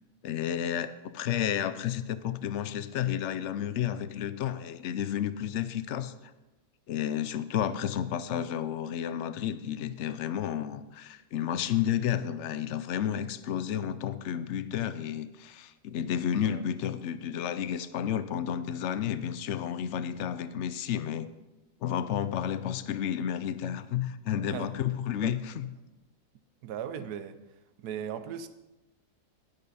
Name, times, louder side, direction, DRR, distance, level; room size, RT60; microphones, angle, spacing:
voice 1, 0.2-6.1 6.9-21.3 21.8-25.7, left 9 dB, 65° left, 13 dB, 0.7 m, -31 dB
voice 2, 26.6-27.4 27.8-28.5, right 8 dB, 85° right, 11 dB, 1.2 m, -38 dB
11.0 x 10.5 x 4.1 m, 1.0 s
omnidirectional pair, 1.7 m